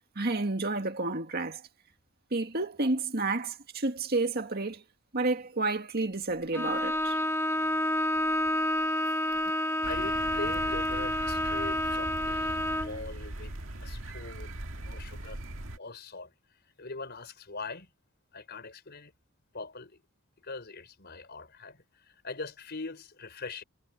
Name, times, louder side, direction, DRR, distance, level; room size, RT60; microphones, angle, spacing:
voice 1, 0.2-1.6 2.3-4.8 5.1-7.2, right 3 dB, 50° right, 2.1 m, -30 dB
Bowed string instrument, 6.5-13.0, left 1 dB, 10° left, 2.4 m, -29 dB
sound 1, 9.8-15.8, right 1 dB, 70° right, 1.9 m, -40 dB
voice 2, 9.9-13.5 13.8-15.4 15.8-16.3 16.6-17.9 18.3-19.1 19.5-20.0 20.4-23.6, left 3 dB, 50° left, 5.2 m, -42 dB
head